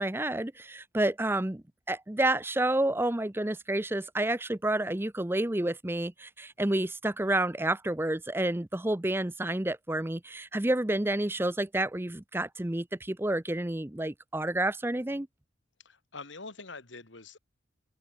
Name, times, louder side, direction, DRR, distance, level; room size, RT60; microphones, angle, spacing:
voice 1, 0.0-15.3, right 1 dB, 10° right, 0.6 m, -29 dB
voice 2, 15.8-17.4, left 3 dB, 70° left, 2.7 m, -45 dB
open air
head